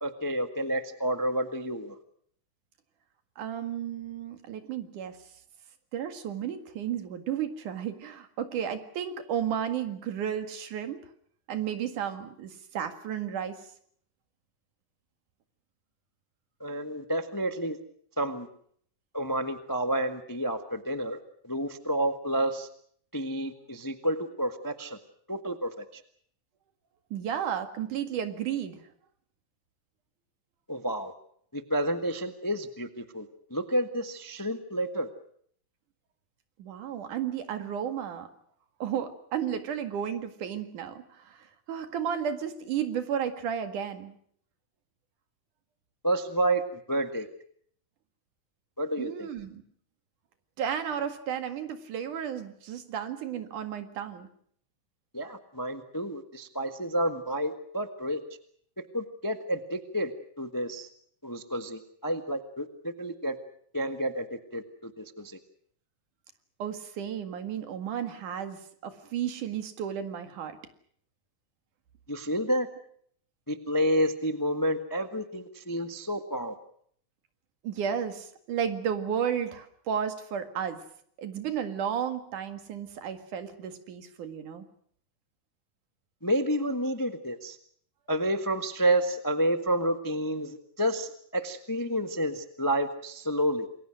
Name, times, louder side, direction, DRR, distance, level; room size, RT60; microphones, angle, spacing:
voice 1, 0.0-1.9 16.6-17.8 18.2-18.5 19.1-21.2 21.4-22.7 23.1-25.0 25.3-26.0 30.7-31.1 31.5-35.1 46.0-46.6 46.9-47.3 48.8-49.3 55.1-58.2 58.9-60.1 60.4-60.9 61.2-63.4 63.7-65.4 72.1-72.7 73.5-76.5 86.2-87.6 88.1-93.7, right 1 dB, 25° left, 8 dB, 0.4 m, -30 dB
voice 2, 3.4-5.2 5.9-11.0 11.5-13.6 27.1-28.8 36.6-38.3 38.8-44.2 49.0-49.6 50.6-54.3 66.6-70.6 77.6-80.8 81.2-84.7, right 8 dB, 85° right, 8 dB, 3.5 m, -33 dB
28.0 x 22.0 x 6.4 m, 0.63 s
omnidirectional pair, 3.5 m